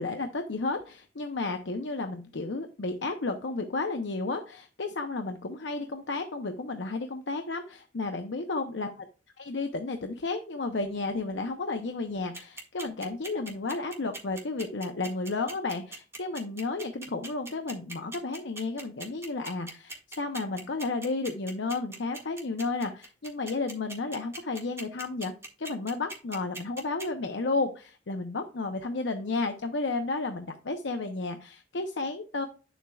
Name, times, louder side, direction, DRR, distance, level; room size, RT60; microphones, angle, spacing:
voice 1, 0.0-8.9 9.5-25.3 25.6-32.5, left 3 dB, 75° left, 6 dB, 0.7 m, -32 dB
sound 1, 12.3-27.0, right 2 dB, 15° right, 1.7 m, -40 dB
9.5 x 7.1 x 2.4 m, 0.35 s
head